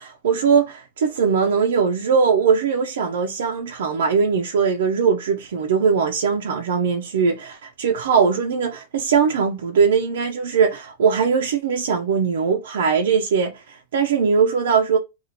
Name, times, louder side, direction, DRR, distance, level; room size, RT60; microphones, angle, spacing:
voice 1, 0.0-15.0, right 6 dB, 90° right, 0.5 m, -20 dB
2.8 x 2.4 x 4.0 m
supercardioid pair, 160°, 0 cm